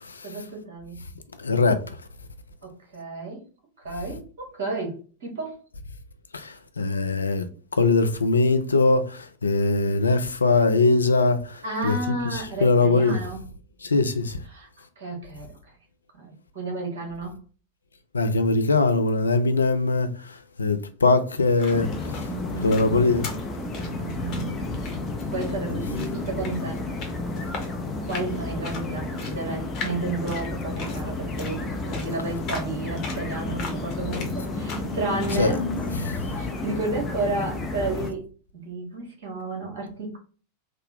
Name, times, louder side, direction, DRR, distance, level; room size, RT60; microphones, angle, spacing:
voice 1, 0.2-1.0 2.6-3.4 3.8-5.6 11.6-13.4 14.5-14.7 15.0-15.6 16.1-17.3 22.3-22.9 23.8-24.6 25.3-27.0 28.1-35.6 36.0-38.3 38.6-40.2, right 2 dB, 55° right, 1.5 m, -32 dB
voice 2, 1.4-1.8 6.3-7.5 7.7-13.2 13.8-14.4 18.1-21.9 22.6-23.3 35.4-35.5 36.0-36.2, left 3 dB, 75° left, 0.4 m, -22 dB
sound 1, 21.3-35.5, left 4 dB, 40° left, 1.0 m, -41 dB
sound 2, 21.7-38.1, left 2 dB, 20° left, 0.6 m, -31 dB
3.7 x 2.1 x 3.6 m
figure-of-eight pair, 90°, 0 cm